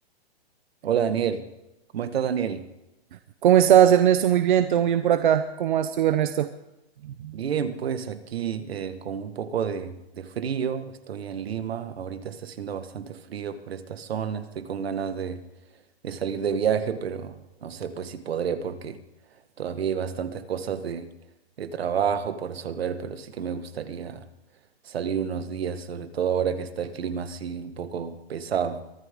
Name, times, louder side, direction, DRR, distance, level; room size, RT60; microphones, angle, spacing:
voice 1, 0.8-1.4 1.9-2.6 7.3-15.4 16.0-17.3 17.6-19.0 19.6-21.1 21.6-24.2 24.8-28.8, right 7 dB, 70° right, 10 dB, 1.7 m, -29 dB
voice 2, 3.4-6.5 7.2-7.4, right 10 dB, 50° right, 10 dB, 0.9 m, -19 dB
23.5 x 13.5 x 3.7 m, 0.93 s
hypercardioid pair, 165°, 32 cm